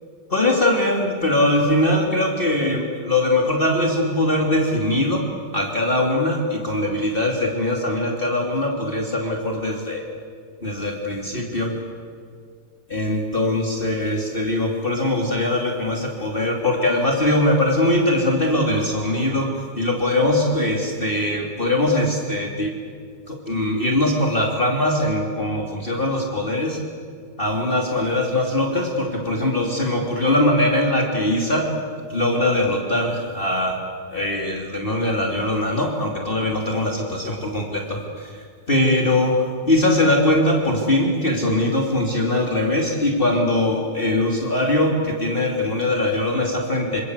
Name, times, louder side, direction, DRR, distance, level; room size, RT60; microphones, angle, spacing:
voice 1, 0.3-5.3 5.5-10.0 10.6-11.7 12.9-22.7 23.3-26.8 27.4-31.7 32.1-33.8 34.1-39.4 39.7-47.0, left 1 dB, 30° left, 0 dB, 3.2 m, -21 dB
27.5 x 26.0 x 8.2 m, 2.2 s
omnidirectional pair, 2.0 m